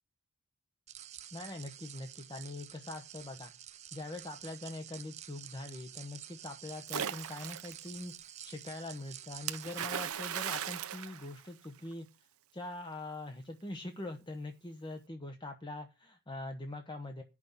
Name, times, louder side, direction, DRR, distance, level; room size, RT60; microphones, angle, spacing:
sound 1, 0.9-10.1, right 11 dB, 30° right, 0.5 m, -50 dB
voice 1, 1.3-3.5 3.9-8.1 8.4-17.2, left 2 dB, 20° left, 5 dB, 1.0 m, -43 dB
Splash splatter, 6.9-7.8 9.5-11.9, right 9 dB, 70° right, 0.8 m, -37 dB
10.5 x 6.2 x 7.1 m, 0.29 s
head